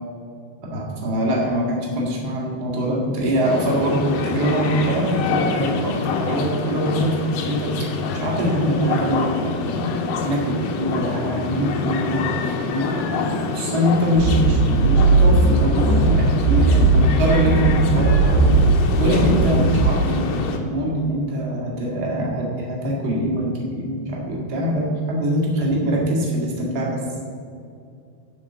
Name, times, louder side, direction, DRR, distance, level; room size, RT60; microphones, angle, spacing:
voice 1, 0.7-7.7 8.1-9.9 10.2-18.2 19.0-27.0, equal, 65° right, -3 dB, 1.0 m, -23 dB
sound 1, 3.4-20.6, left 4 dB, 80° left, 2.0 m, -26 dB
sound 2, 14.2-19.9, right 3 dB, 80° right, 3.0 m, -17 dB
11.5 x 4.0 x 7.8 m, 2.4 s
omnidirectional pair, 4.9 m